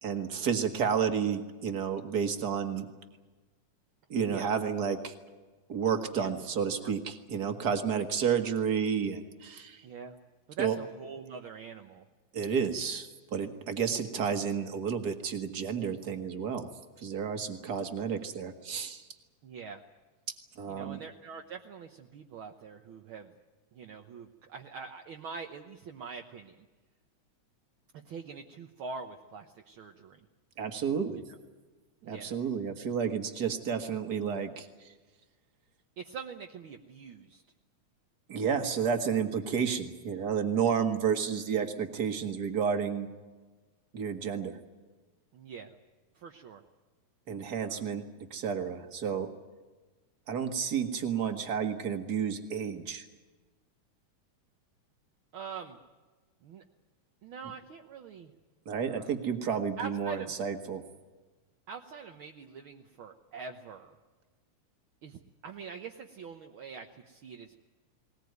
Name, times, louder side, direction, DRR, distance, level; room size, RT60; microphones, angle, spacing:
voice 1, 0.0-2.9 4.1-5.1 5.7-9.8 10.6-10.8 12.3-16.7 17.0-19.1 20.6-21.0 30.6-31.2 32.0-34.9 38.3-43.1 43.9-44.6 47.3-48.0 48.3-49.3 50.3-53.1 58.7-60.8, right 7 dB, 40° right, 7 dB, 1.9 m, -31 dB
voice 2, 9.8-10.2 10.5-12.1 19.4-19.8 20.7-23.3 23.7-26.7 27.9-30.2 31.1-31.2 32.0-32.4 36.0-37.4 45.3-45.7 46.1-46.6 47.6-47.8 55.3-55.8 56.4-56.6 57.2-58.3 58.8-59.2 59.8-60.3 61.7-63.9 65.0-67.5, right 5 dB, 60° right, 4 dB, 1.5 m, -44 dB
20.0 x 20.0 x 9.4 m, 1.3 s
omnidirectional pair, 3.5 m